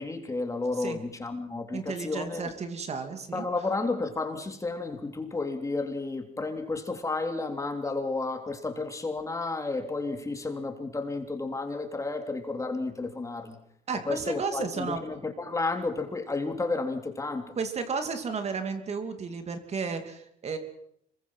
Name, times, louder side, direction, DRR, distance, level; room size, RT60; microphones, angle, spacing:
voice 1, 0.0-2.5 3.3-13.6 14.0-17.5, left 3 dB, 20° left, 5 dB, 3.4 m, -32 dB
voice 2, 1.7-3.5 13.9-15.0 17.6-20.6, right 5 dB, 40° right, 7 dB, 2.8 m, -33 dB
26.0 x 22.5 x 5.8 m, 0.71 s
cardioid pair, 110°, 17 cm